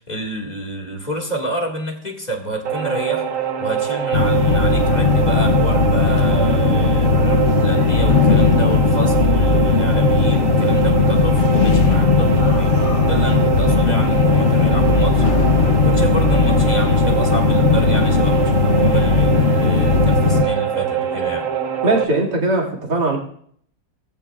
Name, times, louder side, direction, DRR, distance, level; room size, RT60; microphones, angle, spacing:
voice 1, 0.0-3.3 3.6-12.8 13.0-15.2 15.8-21.5, right 1 dB, 25° left, 2 dB, 2.1 m, -28 dB
sound 1, 2.6-22.0, right 9 dB, 55° right, 1.4 m, -24 dB
sound 2, 4.1-20.4, left 4 dB, 50° left, 1.0 m, -16 dB
voice 2, 21.8-23.2, right 2 dB, 75° right, -1 dB, 3.0 m, -19 dB
20.5 x 14.5 x 2.4 m, 0.63 s
omnidirectional pair, 1.8 m